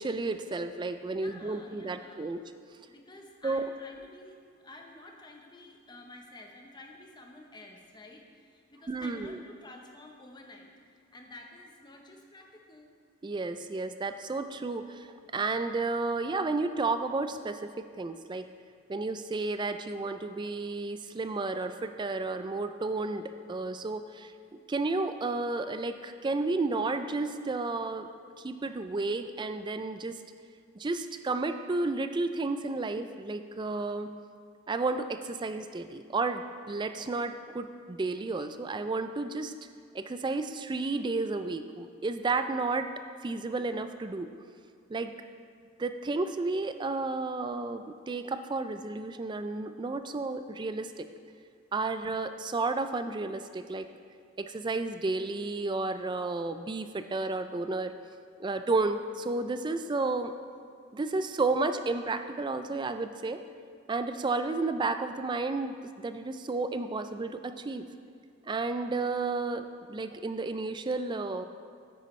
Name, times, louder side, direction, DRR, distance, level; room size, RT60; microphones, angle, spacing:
voice 1, 0.0-2.4 3.4-3.7 8.9-9.4 13.2-15.1 15.3-18.5 18.9-24.3 24.7-28.1 28.4-30.1 30.8-34.1 34.7-39.5 39.9-42.9 43.2-44.3 44.9-45.1 45.8-51.1 51.7-53.9 54.4-57.9 58.4-60.3 60.9-63.4 63.9-67.9 68.5-71.4, right 3 dB, 20° right, 9 dB, 0.3 m, -32 dB
voice 2, 1.1-2.4 2.9-12.9, left 2 dB, 20° left, 1 dB, 0.8 m, -50 dB
9.3 x 9.2 x 3.2 m, 2.2 s
head